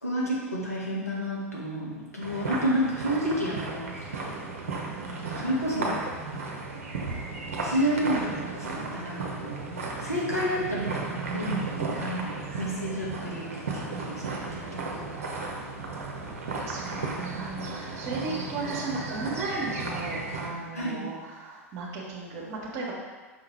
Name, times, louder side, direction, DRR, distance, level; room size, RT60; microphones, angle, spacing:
voice 1, 0.0-3.9 5.1-6.5 7.6-9.6 10.0-11.1 11.3-15.1 18.3-18.5 20.7-21.1, equal, 85° left, -5 dB, 1.6 m, -30 dB
sound 1, 2.2-20.5, right 3 dB, 65° right, 1.1 m, -34 dB
voice 2, 16.6-22.9, right 3 dB, 40° right, -3 dB, 1.7 m, -35 dB
6.2 x 3.7 x 4.6 m, 1.4 s
figure-of-eight pair, 85°, 8 cm